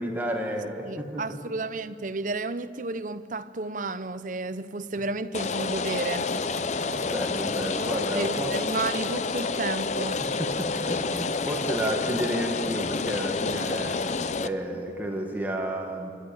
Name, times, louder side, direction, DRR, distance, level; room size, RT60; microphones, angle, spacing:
voice 1, 0.0-1.4 6.8-8.5 10.2-14.0 14.4-16.1, right 1 dB, 10° right, 1.9 m, -31 dB
voice 2, 0.9-6.3 8.1-10.2, right 3 dB, 45° right, 0.8 m, -32 dB
Rain, 5.3-14.5, left 4 dB, 40° left, 0.5 m, -29 dB
27.5 x 15.0 x 8.9 m
head